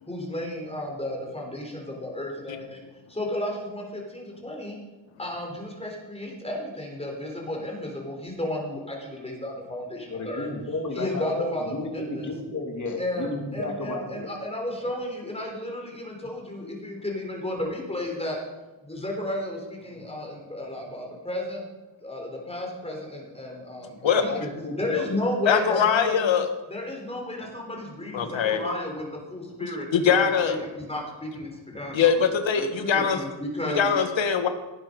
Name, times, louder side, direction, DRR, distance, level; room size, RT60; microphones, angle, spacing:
voice 1, 0.1-4.8 5.2-10.5 10.9-12.3 13.0-18.4 18.8-21.6 22.0-24.5 24.8-26.3 26.7-32.2 32.6-33.9, left 1 dB, 15° left, 0 dB, 4.1 m, -33 dB
voice 2, 10.1-14.3 24.1-25.1, left 2 dB, 40° left, 1 dB, 3.0 m, -32 dB
voice 3, 25.5-26.5 28.1-28.6 29.6-30.6 31.9-33.2 33.7-34.5, left 7 dB, 75° left, 7 dB, 1.7 m, -22 dB
17.5 x 9.4 x 5.4 m, 1.1 s
cardioid pair, 115°, 46 cm